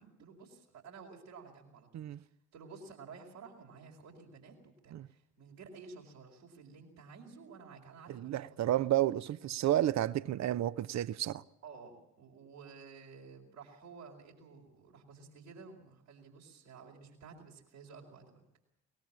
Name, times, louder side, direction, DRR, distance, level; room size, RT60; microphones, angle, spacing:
voice 1, 0.0-2.1 2.5-8.6 11.6-18.4, right 5 dB, 75° right, 4.5 m, -53 dB
voice 2, 8.1-11.4, right 13 dB, 45° right, 0.8 m, -31 dB
22.5 x 19.5 x 7.4 m
figure-of-eight pair, 45°, 39 cm